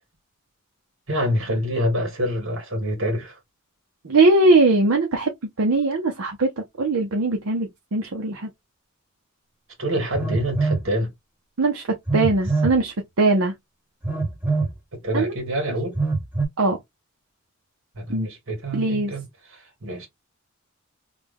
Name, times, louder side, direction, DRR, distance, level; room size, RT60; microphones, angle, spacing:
voice 1, 1.1-3.4 9.8-11.1 14.9-16.0 18.0-20.1, equal, 70° right, 2.0 m, -26 dB
voice 2, 4.0-6.5 6.8-8.5 11.6-11.8 12.1-13.5 15.1-15.3 16.6-16.8 18.1-18.3 18.7-19.1, right 2 dB, 85° right, 0.7 m, -20 dB
Telephone, 10.1-10.9 12.1-12.8 14.0-14.7 15.9-16.4, right 3 dB, 10° right, 0.8 m, -23 dB
3.3 x 2.3 x 3.5 m
head